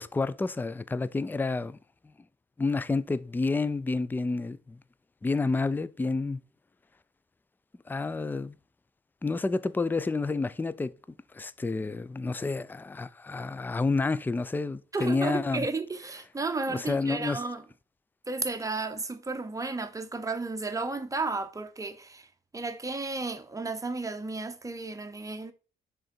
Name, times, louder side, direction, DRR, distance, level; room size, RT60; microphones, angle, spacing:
voice 1, 0.0-1.8 2.6-4.8 5.2-6.4 7.9-8.6 9.2-10.9 11.3-15.7 16.7-17.4, left 3 dB, 10° left, 0.4 m, -29 dB
voice 2, 14.9-17.6 18.3-22.3 22.5-25.5, right 3 dB, 15° right, 0.8 m, -33 dB
6.5 x 3.8 x 4.3 m
cardioid pair, 90°, 20 cm